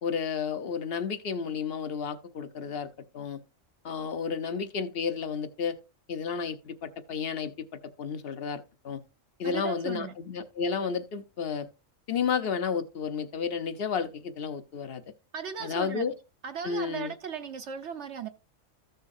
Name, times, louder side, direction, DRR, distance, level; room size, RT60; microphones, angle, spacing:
voice 1, 0.0-2.9 3.1-3.4 3.8-5.8 6.1-9.0 9.4-11.7 12.1-15.0 15.6-16.1 16.6-17.1, left 6 dB, 50° left, 1.0 m, -32 dB
voice 2, 9.4-10.1 15.3-16.0 16.4-18.3, right 7 dB, 60° right, 1.1 m, -36 dB
14.0 x 6.4 x 2.7 m
omnidirectional pair, 1.4 m